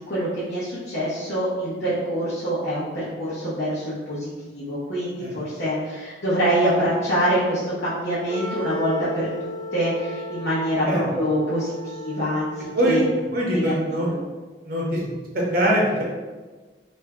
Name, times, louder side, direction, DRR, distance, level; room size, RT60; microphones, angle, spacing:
voice 1, 0.1-13.0 13.5-14.1, equal, 75° left, -10 dB, 0.8 m, -25 dB
Wind instrument woodwind instrument, 8.3-13.4, left 1 dB, 30° left, 0.5 m, -35 dB
voice 2, 13.3-14.1 14.7-15.1 15.3-16.0, equal, 55° right, -3 dB, 0.6 m, -22 dB
2.5 x 2.2 x 3.4 m, 1.3 s
head